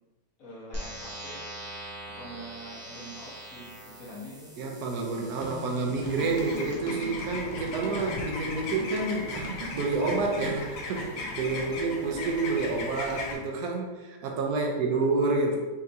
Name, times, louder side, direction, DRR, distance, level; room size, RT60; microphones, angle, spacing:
voice 1, 0.4-1.4 2.1-4.5 11.5-11.7 14.5-15.0, equal, 55° left, -6 dB, 1.5 m, -45 dB
sound 1, 0.7-6.7, right 1 dB, 15° right, 0.5 m, -43 dB
voice 2, 4.6-15.6, right 3 dB, 75° right, 0 dB, 1.2 m, -29 dB
sound 2, 5.4-10.6, right 1 dB, 55° right, 0.7 m, -40 dB
sound 3, 6.0-13.3, left 3 dB, 85° left, 1.3 m, -38 dB
5.5 x 2.9 x 2.6 m, 1.2 s
omnidirectional pair, 1.8 m